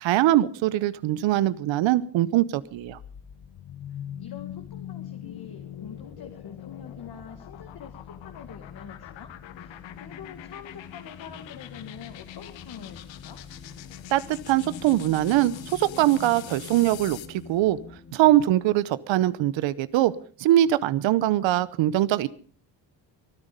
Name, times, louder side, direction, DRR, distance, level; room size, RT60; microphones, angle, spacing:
voice 1, 0.0-3.0 14.1-17.8 18.1-20.1 20.4-22.3, right 14 dB, 85° right, 18 dB, 1.0 m, -22 dB
sound 1, 2.6-17.4, left 11 dB, 80° left, 1.4 m, -42 dB
sound 2, 3.7-18.5, left 4 dB, 30° left, 1.9 m, -49 dB
voice 2, 3.9-13.4, left 7 dB, 55° left, 5 dB, 2.2 m, -45 dB
23.5 x 9.9 x 5.3 m, 0.42 s
cardioid pair, 80°, 44 cm